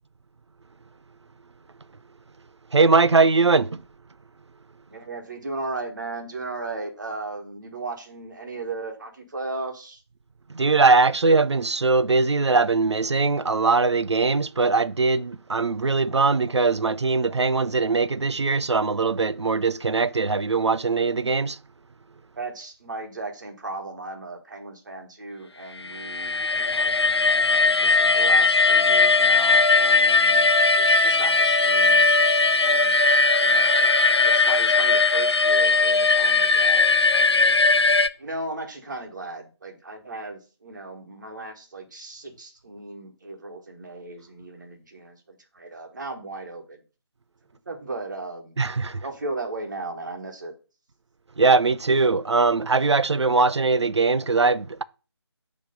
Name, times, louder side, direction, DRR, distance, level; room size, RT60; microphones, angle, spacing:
voice 1, 2.7-3.8 10.5-21.6 48.6-49.0 51.4-54.8, right 4 dB, 75° right, 0.4 m, -21 dB
voice 2, 4.9-10.0 22.4-26.9 27.6-32.0 32.6-33.0 33.4-37.6 38.2-46.8 47.7-48.5 49.0-50.5, right 2 dB, 40° right, 1.3 m, -36 dB
sound 1, 25.8-38.1, left 3 dB, 65° left, 0.5 m, -19 dB
6.4 x 3.2 x 5.2 m
figure-of-eight pair, 160°, 15 cm